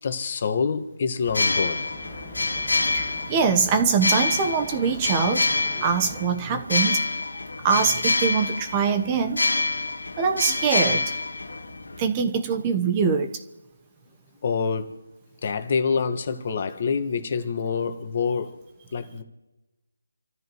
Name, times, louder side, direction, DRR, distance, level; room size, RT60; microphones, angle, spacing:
voice 1, 0.0-1.9 14.4-15.0 15.4-18.6 18.9-19.2, left 5 dB, 40° left, 1.5 m, -26 dB
sound 1, 1.2-12.0, left 3 dB, 85° left, 1.6 m, -27 dB
sound 2, 1.2-6.3, equal, ahead, 1.8 m, -43 dB
voice 2, 2.9-5.5 5.8-7.1 7.6-9.5 10.2-11.1 12.0-13.4, right 5 dB, 20° right, 1.0 m, -23 dB
29.0 x 13.5 x 3.1 m
figure-of-eight pair, 165°, 0 cm